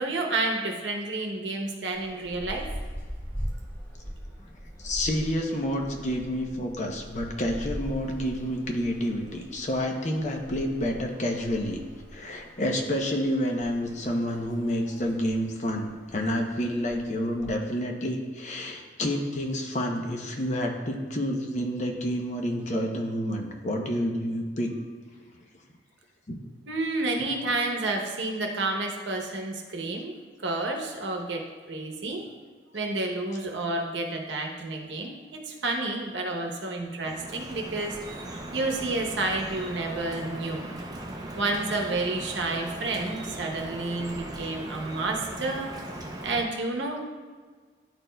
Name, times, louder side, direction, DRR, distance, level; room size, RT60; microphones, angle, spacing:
voice 1, 0.0-2.7 26.7-30.1 30.4-32.2 32.7-38.3 38.5-40.7 41.3-45.7 46.2-47.0, right 2 dB, 85° right, 2 dB, 0.8 m, -30 dB
sound 1, 1.9-17.5, equal, 15° left, 1.1 m, -41 dB
voice 2, 4.8-11.8 12.1-24.7 26.3-26.4, equal, 40° left, 2 dB, 0.6 m, -29 dB
Drip, 37.0-46.4, right 1 dB, 20° right, 0.5 m, -38 dB
10.5 x 4.3 x 2.2 m, 1.6 s
head